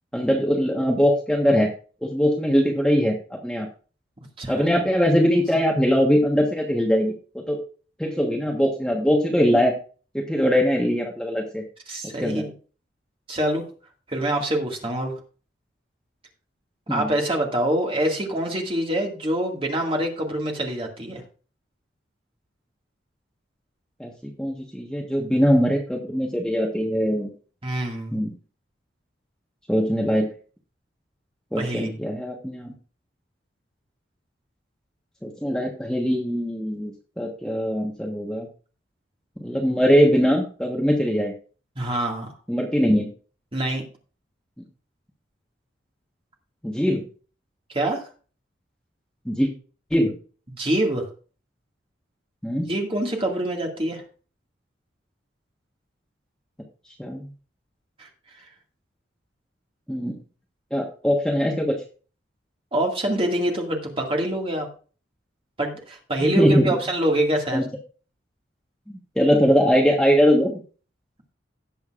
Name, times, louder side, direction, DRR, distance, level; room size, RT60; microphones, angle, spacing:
voice 1, 0.1-1.7 2.0-3.7 4.5-7.6 8.0-9.7 10.1-11.6 12.2-12.5 16.9-17.1 24.0-27.3 28.1-28.3 29.7-30.3 31.5-32.7 35.2-38.5 39.4-41.3 42.5-43.1 46.6-47.0 49.2-49.5 49.9-50.1 52.4-52.7 57.0-57.3 59.9-60.2 60.7-61.7 66.2-66.7 67.5-67.7 68.9-70.6, equal, 5° left, 0 dB, 1.2 m, -21 dB
voice 2, 11.9-12.5 13.3-13.6 14.1-15.1 16.9-21.2 27.6-28.2 31.6-31.9 41.8-42.3 43.5-43.8 47.7-48.0 50.5-51.1 52.5-54.0 58.0-58.1 62.7-64.7 65.6-67.6, right 1 dB, 30° right, 0 dB, 2.1 m, -25 dB
17.5 x 6.9 x 2.5 m, 0.38 s
head